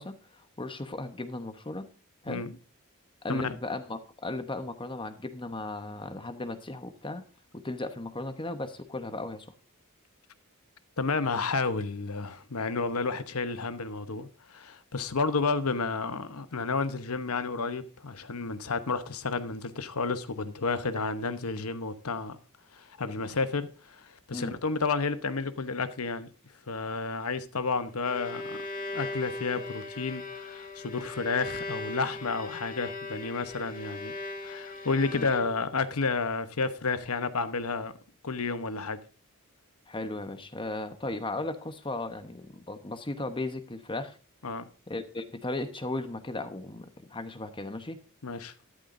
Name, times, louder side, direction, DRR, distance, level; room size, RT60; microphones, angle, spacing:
voice 1, 0.0-1.9 2.2-2.4 3.2-7.2 7.5-9.5 24.3-24.6 35.1-35.3 39.9-44.2 44.9-48.0, left 2 dB, 25° left, 1.0 m, -36 dB
voice 2, 11.0-22.4 22.7-26.3 26.7-28.6 28.9-34.1 34.4-37.9 38.2-39.0 44.4-44.7 48.2-48.5, left 4 dB, 85° left, 1.0 m, -31 dB
Bowed string instrument, 27.9-35.8, left 2 dB, 40° left, 1.9 m, -39 dB
12.5 x 11.5 x 2.7 m
head